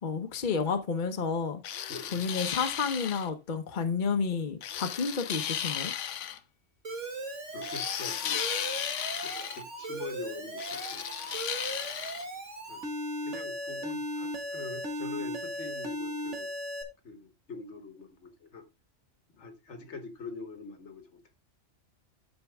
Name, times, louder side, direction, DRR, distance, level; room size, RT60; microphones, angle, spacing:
voice 1, 0.0-1.6 2.1-5.9, left 5 dB, 45° left, 1.0 m, -31 dB
sound 1, 1.6-3.3 4.6-6.4 7.6-9.6 10.6-12.2, left 9 dB, 85° left, 1.0 m, -35 dB
voice 2, 1.9-2.2 7.5-8.4 9.2-11.3 12.7-16.5 17.0-18.7 19.3-21.3, left 4 dB, 70° left, 1.7 m, -44 dB
Alarm, 6.8-16.8, equal, 80° right, 2.1 m, -37 dB
12.5 x 4.6 x 3.4 m
omnidirectional pair, 1.2 m